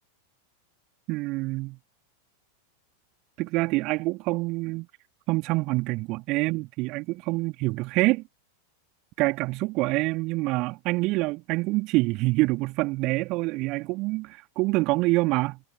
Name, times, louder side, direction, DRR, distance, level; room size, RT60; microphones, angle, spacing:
voice 1, 1.1-1.8 3.4-4.9 5.3-8.2 9.2-15.6, right 22 dB, 40° right, 2.0 m, -26 dB
figure-of-eight pair, 90°, 0 cm